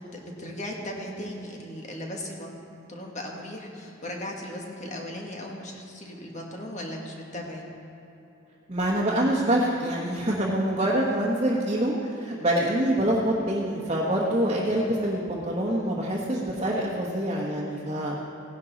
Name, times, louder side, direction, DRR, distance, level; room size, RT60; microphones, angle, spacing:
voice 1, 0.1-2.6 2.9-7.7, left 1 dB, 35° left, 0 dB, 1.6 m, -37 dB
voice 2, 8.7-18.2, right 1 dB, 30° right, -5 dB, 1.2 m, -25 dB
16.5 x 11.0 x 4.1 m, 3.0 s
head